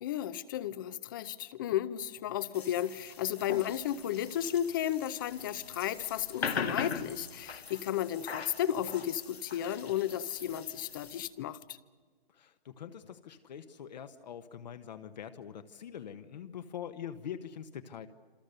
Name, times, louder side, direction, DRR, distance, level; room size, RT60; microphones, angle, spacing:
voice 1, 0.0-11.6, left 11 dB, 20° left, 17 dB, 0.7 m, -33 dB
sound 1, 2.5-11.3, left 5 dB, 90° left, 2.1 m, -41 dB
voice 2, 12.3-18.1, left 9 dB, 45° left, 8 dB, 1.1 m, -44 dB
27.0 x 27.0 x 6.7 m, 1.5 s
hypercardioid pair, 160°, 30 cm